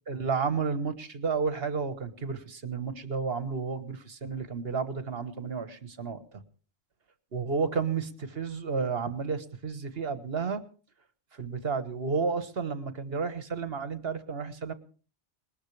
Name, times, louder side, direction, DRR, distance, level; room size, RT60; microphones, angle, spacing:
voice 1, 0.1-6.4 7.3-10.6 11.3-14.7, right 5 dB, 65° right, 11 dB, 1.6 m, -32 dB
20.5 x 20.0 x 3.3 m, 0.39 s
omnidirectional pair, 1.1 m